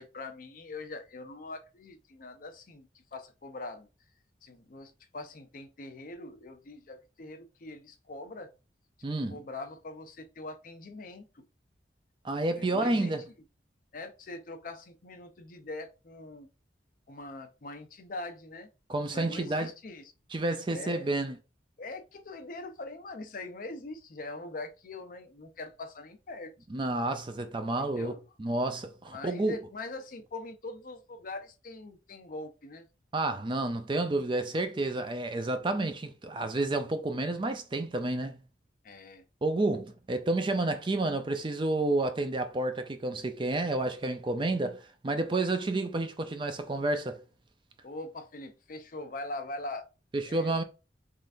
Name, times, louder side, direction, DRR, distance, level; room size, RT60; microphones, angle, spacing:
voice 1, 0.0-3.9 4.4-8.5 9.3-11.4 12.6-13.1 13.9-16.5 17.1-18.7 19.1-20.1 20.7-21.1 21.8-26.5 27.8-28.2 29.1-32.9 38.8-39.2 47.8-49.8 50.3-50.6, left 2 dB, 50° left, 0.6 m, -42 dB
voice 2, 9.0-9.4 12.2-13.3 18.9-19.7 20.3-21.4 26.7-28.1 28.4-29.6 33.1-38.4 39.4-47.2 50.1-50.6, right 2 dB, 25° right, 0.5 m, -30 dB
3.8 x 3.2 x 2.5 m
head